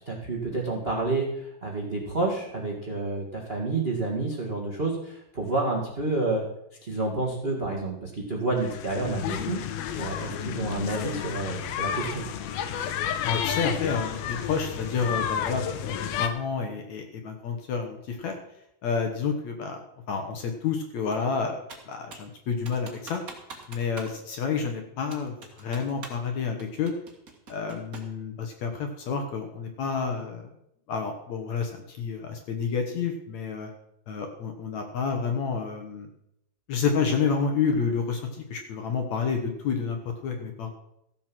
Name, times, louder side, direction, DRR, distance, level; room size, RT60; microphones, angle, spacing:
voice 1, 0.0-6.4 6.8-12.2, right 2 dB, 60° right, -1 dB, 0.6 m, -29 dB
sound 1, 8.6-16.3, left 9 dB, 80° left, 2.7 m, -31 dB
voice 2, 13.2-18.3 18.8-23.2 23.7-26.9 27.5-30.5 30.9-33.7 34.1-36.1 36.7-40.0 40.2-40.7, left 5 dB, 60° left, 4 dB, 2.0 m, -29 dB
Computer keyboard, 21.7-22.3 22.7-24.2 24.4-24.5 25.1-26.3 26.6-28.2, right 3 dB, 40° right, 1.3 m, -44 dB
15.0 x 7.5 x 6.1 m, 0.78 s
omnidirectional pair, 4.4 m